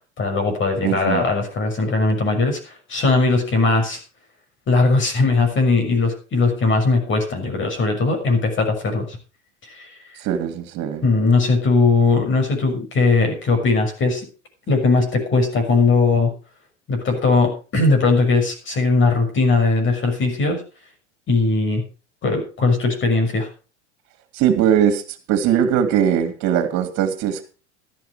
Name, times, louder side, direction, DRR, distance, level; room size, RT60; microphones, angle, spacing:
voice 1, 0.2-4.0 4.7-9.2 9.6-10.0 11.0-14.3 14.7-16.3 16.9-20.6 21.3-21.9 22.2-23.5, left 3 dB, 35° left, 6.5 m, -19 dB
voice 2, 0.8-1.2 10.2-11.0 24.3-25.0 25.3-27.5, right 9 dB, 50° right, 2.7 m, -20 dB
14.5 x 11.0 x 4.9 m
hypercardioid pair, 100°, 35 cm